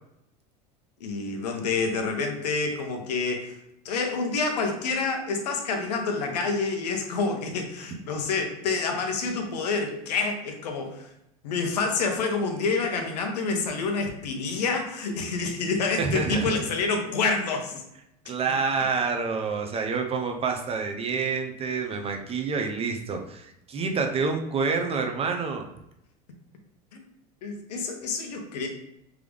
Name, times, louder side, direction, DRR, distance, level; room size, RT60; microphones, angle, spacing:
voice 1, 1.0-3.5 3.8-11.1 11.4-17.8 26.9-27.0 27.4-28.7, left 4 dB, 85° left, 3 dB, 0.9 m, -28 dB
voice 2, 16.0-16.5 18.2-25.7, right 4 dB, 30° right, 4 dB, 0.8 m, -28 dB
3.7 x 3.3 x 3.4 m, 0.81 s
hypercardioid pair, 95°, 20 cm